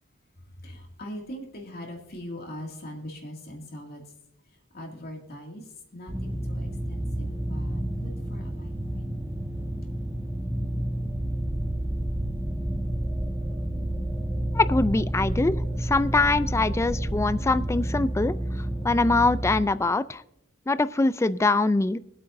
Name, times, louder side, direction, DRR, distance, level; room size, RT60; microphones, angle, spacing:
voice 1, 0.6-4.1 4.4-9.1, equal, 50° left, 0 dB, 2.3 m, -41 dB
sound 1, 6.1-19.6, right 1 dB, 10° right, 1.2 m, -30 dB
sound 2, 11.1-17.7, equal, 90° right, 1.4 m, -39 dB
voice 2, 14.5-20.2 20.7-22.0, left 3 dB, 15° left, 15 dB, 0.3 m, -23 dB
23.5 x 8.5 x 2.6 m, 0.81 s
head